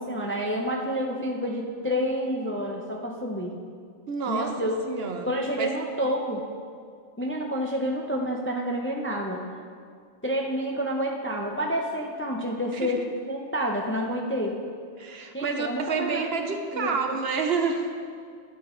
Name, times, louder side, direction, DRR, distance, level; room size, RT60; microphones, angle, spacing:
voice 1, 0.0-3.6 4.3-4.7 5.2-6.5 7.2-9.4 10.2-14.6 15.3-17.2, equal, 15° left, 0 dB, 0.5 m, -29 dB
voice 2, 4.1-5.7 12.7-12.9 15.0-17.9, right 5 dB, 60° right, 5 dB, 0.9 m, -29 dB
11.0 x 8.6 x 3.8 m, 2.1 s
omnidirectional pair, 1.2 m